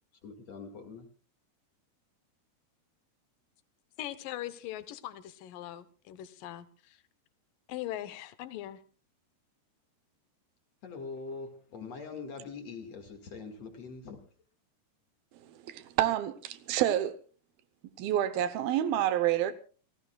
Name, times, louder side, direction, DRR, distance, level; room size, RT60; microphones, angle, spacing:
voice 1, 0.2-1.1 10.8-14.2, left 4 dB, 50° left, 2.5 m, -43 dB
voice 2, 4.0-7.0 7.7-8.8, left 13 dB, 70° left, 2.3 m, -41 dB
voice 3, 15.4-17.2 18.0-19.5, right 12 dB, 75° right, 2.5 m, -28 dB
28.0 x 17.5 x 2.3 m
omnidirectional pair, 4.8 m